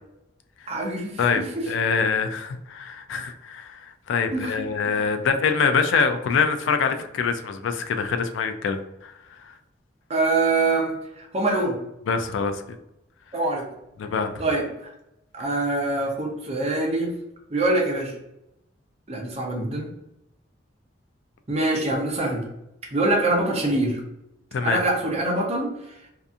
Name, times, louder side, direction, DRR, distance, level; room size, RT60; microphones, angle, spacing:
voice 1, 0.7-1.7 4.3-4.5 10.1-11.8 13.3-13.6 14.4-14.9 15.3-17.1 17.5-18.1 19.1-19.9 21.5-22.5 22.9-24.0 24.6-25.7, right 2 dB, 35° right, 0 dB, 0.6 m, -24 dB
voice 2, 1.2-9.1 12.1-12.6 14.0-14.4 24.5-24.8, left 5 dB, 80° left, 8 dB, 0.3 m, -24 dB
2.7 x 2.4 x 2.3 m, 0.87 s
head